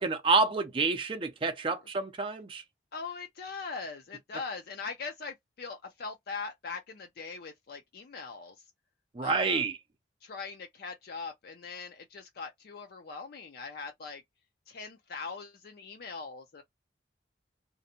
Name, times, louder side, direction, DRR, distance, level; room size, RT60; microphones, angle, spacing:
voice 1, 0.0-2.6 9.1-9.8, right 4 dB, 30° right, 0.4 m, -28 dB
voice 2, 2.9-8.6 9.2-9.6 10.2-14.2 14.7-16.6, left 4 dB, 60° left, 0.4 m, -41 dB
2.6 x 2.1 x 2.7 m
head